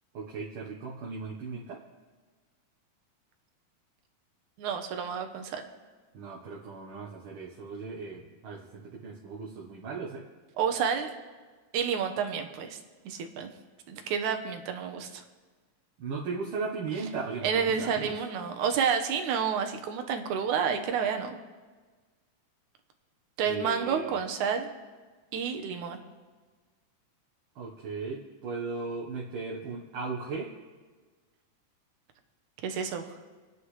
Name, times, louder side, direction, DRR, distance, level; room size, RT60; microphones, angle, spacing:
voice 1, 0.1-1.8 6.1-10.3 16.0-18.1 23.4-24.1 27.6-30.5, right 4 dB, 55° right, -2 dB, 1.7 m, -37 dB
voice 2, 4.6-5.6 10.6-11.1 11.7-12.8 13.1-13.5 13.9-15.2 17.4-21.4 23.4-24.7 25.3-26.0 32.6-33.0, right 7 dB, 80° right, 6 dB, 2.5 m, -29 dB
28.5 x 9.6 x 3.3 m, 1.4 s
omnidirectional pair, 3.5 m